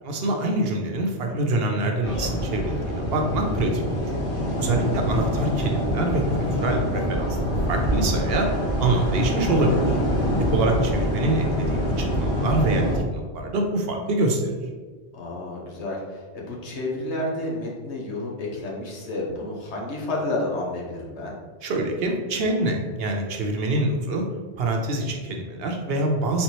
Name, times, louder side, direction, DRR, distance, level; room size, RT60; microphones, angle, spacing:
voice 1, 0.0-4.0 4.3-7.4 7.7-10.0 10.5-14.5 21.6-24.2 24.6-26.4, right 2 dB, 65° right, 2 dB, 0.8 m, -25 dB
sound 1, 2.0-13.0, equal, 30° left, 0.9 m, -25 dB
voice 2, 15.1-21.4, left 2 dB, 90° left, -2 dB, 1.2 m, -31 dB
4.4 x 3.6 x 3.0 m, 1.4 s
omnidirectional pair, 1.1 m